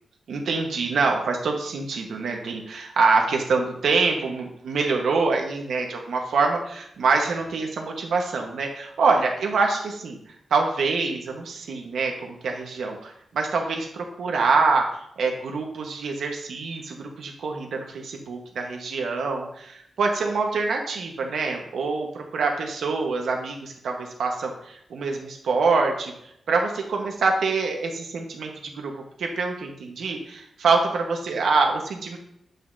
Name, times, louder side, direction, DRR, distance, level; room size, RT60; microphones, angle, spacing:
voice 1, 0.3-10.2 10.5-14.9 15.2-26.1 26.5-28.9 29.2-32.2, right 4 dB, 85° right, 1 dB, 1.4 m, -25 dB
9.3 x 5.7 x 2.8 m, 0.74 s
wide cardioid pair, 130°, 0 cm